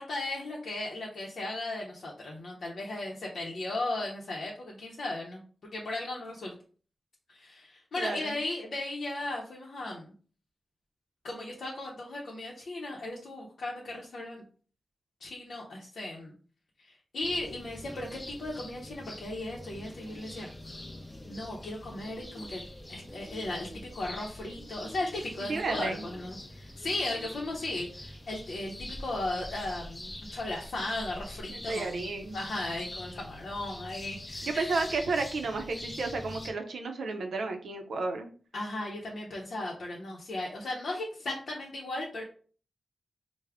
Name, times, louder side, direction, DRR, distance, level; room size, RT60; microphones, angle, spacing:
voice 1, 0.0-6.5 7.3-10.1 11.2-14.4 15.2-16.3 16.8-20.5 21.3-22.6 22.9-32.0 32.3-34.8 38.5-42.2, left 2 dB, 80° left, -2 dB, 0.6 m, -36 dB
voice 2, 8.0-8.4 25.5-26.0 31.5-32.4 34.4-38.3, right 3 dB, 90° right, 5 dB, 0.5 m, -32 dB
sound 1, 17.2-36.5, left 1 dB, 20° left, 0.5 m, -44 dB
3.4 x 2.0 x 3.4 m, 0.41 s
wide cardioid pair, 90°, 0 cm